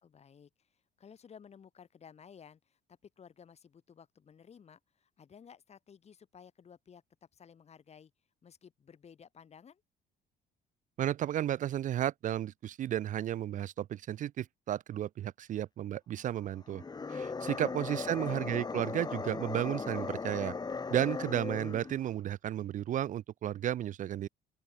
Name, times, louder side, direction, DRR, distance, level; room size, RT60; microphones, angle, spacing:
voice 1, 0.0-7.0 7.3-8.1 8.4-9.8 17.4-18.2, left 7 dB, 40° left, 3.7 m, -56 dB
voice 2, 11.0-16.8 17.1-20.5 20.9-24.3, right 11 dB, 50° right, 0.5 m, -33 dB
sound 1, 16.7-22.0, left 4 dB, 25° left, 2.2 m, -38 dB
open air
cardioid pair, 110°, 17 cm